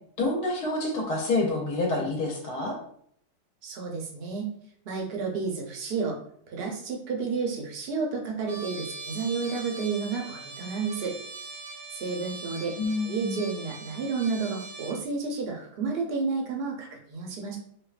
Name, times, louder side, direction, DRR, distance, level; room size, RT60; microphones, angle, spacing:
voice 1, 0.2-2.8 12.8-13.4, left 2 dB, 75° left, -1 dB, 1.3 m, -28 dB
voice 2, 3.6-4.5 4.9-6.2 6.5-11.1 11.9-12.8 13.0-17.6, right 4 dB, 55° right, 1 dB, 0.7 m, -31 dB
Trumpet, 8.5-15.0, right 3 dB, 75° right, 1.1 m, -41 dB
4.4 x 2.1 x 2.4 m, 0.65 s
omnidirectional pair, 1.7 m